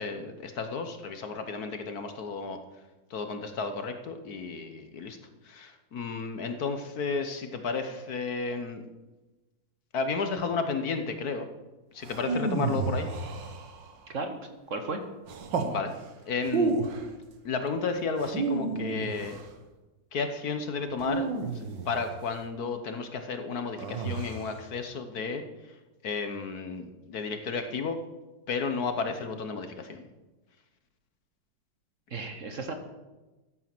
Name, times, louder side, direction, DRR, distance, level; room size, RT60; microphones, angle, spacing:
voice 1, 0.0-2.6 3.1-5.2 5.4-8.8 9.9-11.5 11.9-13.1 15.6-15.9 16.3-16.8 17.4-19.4 20.1-21.3 21.5-25.4 26.0-28.0 28.5-30.0, left 4 dB, 60° left, 7 dB, 1.4 m, -32 dB
sound 1, 12.0-14.0 15.3-15.8 16.4-17.1 18.2-19.5 21.0-22.2 23.8-24.6, right 4 dB, 75° right, 2.0 m, -31 dB
voice 2, 14.7-15.0 32.1-32.7, right 3 dB, 45° right, 6 dB, 1.3 m, -34 dB
13.5 x 8.5 x 6.0 m, 1.1 s
omnidirectional pair, 2.0 m